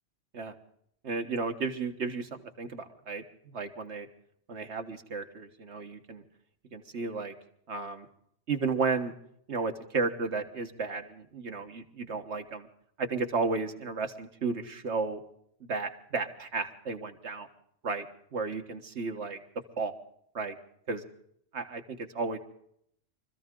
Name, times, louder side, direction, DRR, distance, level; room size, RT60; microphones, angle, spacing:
voice 1, 1.0-2.3 2.6-4.1 4.5-6.2 6.7-7.3 7.7-8.1 8.5-9.1 9.5-12.7 13.0-15.2 15.6-17.5 17.8-18.1 18.3-19.4 19.8-19.9 20.3-20.5 20.9-21.0 21.5-22.4, right 4 dB, 80° right, 6 dB, 1.7 m, -33 dB
25.0 x 14.5 x 3.8 m, 0.70 s
omnidirectional pair, 1.1 m